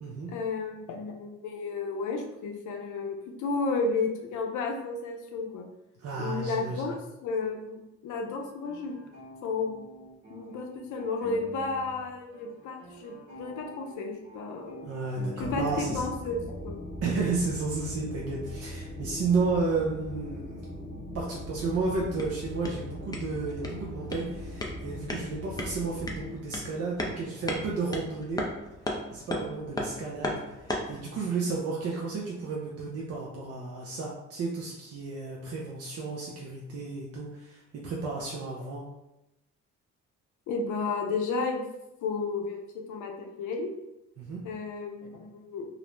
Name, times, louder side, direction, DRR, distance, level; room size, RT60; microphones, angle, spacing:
voice 1, 0.3-5.7 6.2-7.0 7.2-8.9 9.4-9.9 10.3-14.9 15.4-16.8 40.5-41.6 42.0-42.6 42.9-43.7 44.4-45.7, left 4 dB, 75° left, 2 dB, 0.5 m, -32 dB
voice 2, 6.0-6.9 14.8-16.0 17.0-20.9 21.1-28.5 29.1-38.8 44.2-44.4, right 4 dB, 55° right, -3 dB, 0.5 m, -32 dB
sound 1, 8.2-12.1 12.3-16.1, left 1 dB, 85° right, 1.0 m, -47 dB
sound 2, 15.4-26.3, left 1 dB, 40° left, 1.2 m, -40 dB
sound 3, 21.9-31.0, left 1 dB, 15° left, 0.4 m, -37 dB
2.5 x 2.0 x 3.0 m, 0.92 s
cardioid pair, 90°, 30 cm